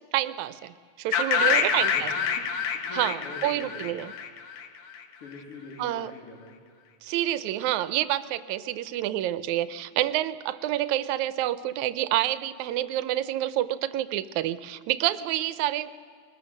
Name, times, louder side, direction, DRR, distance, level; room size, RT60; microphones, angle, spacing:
voice 1, 0.1-2.1 2.9-4.1 5.8-6.1 7.0-15.9, right 13 dB, 80° right, 14 dB, 2.0 m, -28 dB
sound 1, 1.1-5.0, left 7 dB, 65° left, 2.3 m, -27 dB
voice 2, 1.4-3.9 5.2-6.6, left 3 dB, 50° left, -2 dB, 3.4 m, -44 dB
23.0 x 19.5 x 6.4 m, 2.2 s
omnidirectional pair, 3.3 m